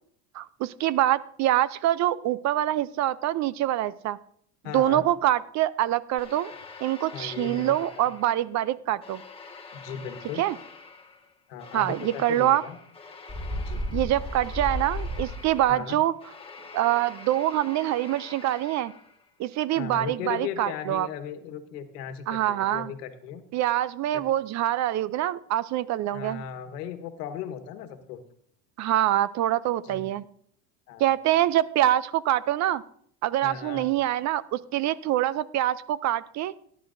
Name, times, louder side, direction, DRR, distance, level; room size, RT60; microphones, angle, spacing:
voice 1, 0.3-4.2 4.7-6.5 6.8-9.2 10.4-10.5 11.7-12.6 13.9-16.1 16.7-18.9 19.4-21.1 22.3-22.9 23.5-26.4 28.8-30.2 31.0-32.8 33.2-36.5, right 13 dB, 40° right, 19 dB, 0.4 m, -25 dB
voice 2, 4.6-5.1 7.1-8.1 9.7-10.4 11.5-12.8 13.7-13.9 15.7-16.0 19.7-23.4 24.1-24.3 26.1-28.2 29.8-30.1 30.9-31.1 33.4-33.9, left 7 dB, 90° left, 8 dB, 1.4 m, -37 dB
sound 1, 6.2-8.6 9.0-19.3, left 4 dB, 10° left, 1.5 m, -46 dB
Bird, 13.3-15.7, equal, 10° right, 5.7 m, -32 dB
18.0 x 11.0 x 2.6 m, 0.65 s
supercardioid pair, 110°, 46 cm